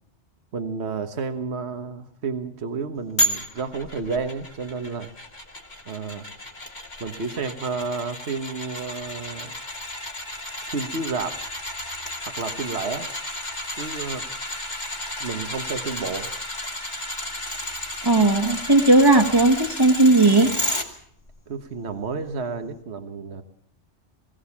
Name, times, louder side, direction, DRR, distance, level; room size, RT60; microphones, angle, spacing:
voice 1, 0.5-5.1 5.9-6.3 7.0-9.5 10.7-11.4 12.2-13.1 13.8-14.3 15.2-16.3 21.5-23.4, right 4 dB, 70° right, 8 dB, 1.6 m, -31 dB
sound 1, 3.2-20.9 21.3-21.4, equal, 40° left, 2.5 m, -32 dB
voice 2, 18.0-20.5, right 2 dB, 20° right, 0 dB, 1.5 m, -16 dB
21.5 x 17.0 x 7.2 m, 0.64 s
omnidirectional pair, 1.1 m